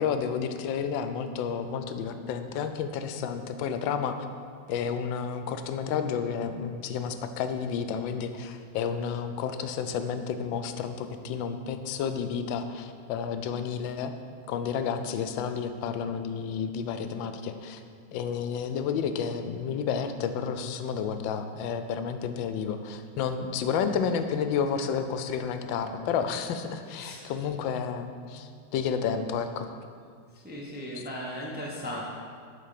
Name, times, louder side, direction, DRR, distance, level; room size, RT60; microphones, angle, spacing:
voice 1, 0.0-4.2 4.7-14.2 14.5-17.8 18.1-29.7, left 7 dB, 90° left, 8 dB, 1.3 m, -31 dB
voice 2, 26.8-27.3 30.3-32.0, equal, 10° right, -3 dB, 0.5 m, -38 dB
8.3 x 4.4 x 5.8 m, 2.2 s
omnidirectional pair, 2.0 m